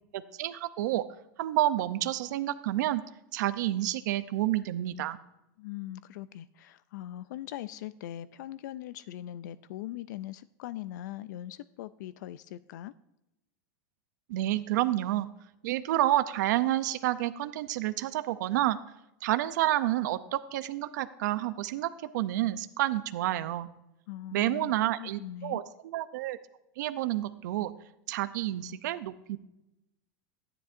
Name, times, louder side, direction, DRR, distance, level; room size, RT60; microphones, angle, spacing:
voice 1, 0.1-1.0 1.4-3.0 3.3-5.2 14.3-15.3 15.6-18.8 19.2-23.7 24.3-26.4 26.8-27.7 28.1-29.4, right 14 dB, 70° right, 12 dB, 0.5 m, -29 dB
voice 2, 5.6-12.9 24.1-24.7 25.0-25.6, left 13 dB, 70° left, 15 dB, 0.4 m, -41 dB
14.0 x 9.8 x 2.5 m, 0.89 s
supercardioid pair, 165°, 10 cm